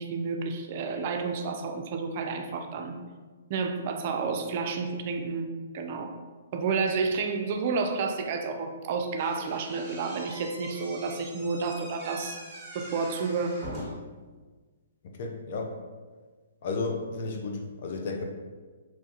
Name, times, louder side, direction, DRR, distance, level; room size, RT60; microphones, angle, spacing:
voice 1, 0.0-3.0 3.5-5.5 5.7-6.1 6.5-12.4 12.7-13.6, right 4 dB, 45° right, 5 dB, 0.3 m, -30 dB
Slam / Squeak, 9.2-14.2, equal, 15° right, 1.0 m, -43 dB
voice 2, 15.0-15.8 16.6-18.2, left 3 dB, 50° left, 3 dB, 0.4 m, -33 dB
3.0 x 2.2 x 2.8 m, 1.4 s
hypercardioid pair, 135°, 0 cm